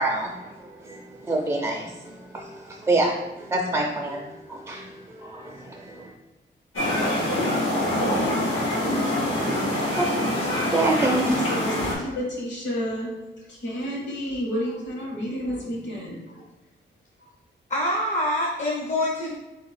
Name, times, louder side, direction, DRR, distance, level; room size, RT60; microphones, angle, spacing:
voice 1, 0.0-6.1 9.3-10.1 10.6-11.4, right 2 dB, 15° right, -1 dB, 0.4 m, -27 dB
sound 1, 6.8-11.9, left 1 dB, 85° left, 1.4 m, -25 dB
voice 2, 11.0-13.1 13.5-16.4 17.2-17.3, equal, 70° left, -2 dB, 1.4 m, -31 dB
voice 3, 17.7-19.3, left 1 dB, 40° left, -2 dB, 0.5 m, -25 dB
3.8 x 2.9 x 4.1 m, 1.1 s
wide cardioid pair, 160°, 20 cm